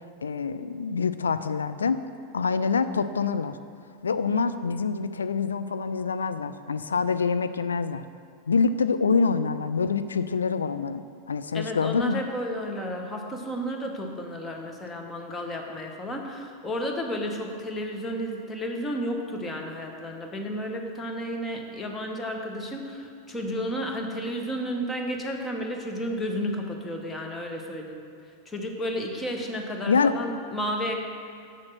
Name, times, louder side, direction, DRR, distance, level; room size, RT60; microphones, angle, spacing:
voice 1, 0.0-2.0 2.3-3.6 4.0-8.0 8.5-12.2 29.9-30.2, left 5 dB, 70° left, 11 dB, 0.3 m, -26 dB
voice 2, 11.5-28.0 28.5-30.9, equal, 15° left, 2 dB, 1.0 m, -32 dB
7.5 x 6.3 x 5.9 m, 2.4 s
figure-of-eight pair, 90°, 0 cm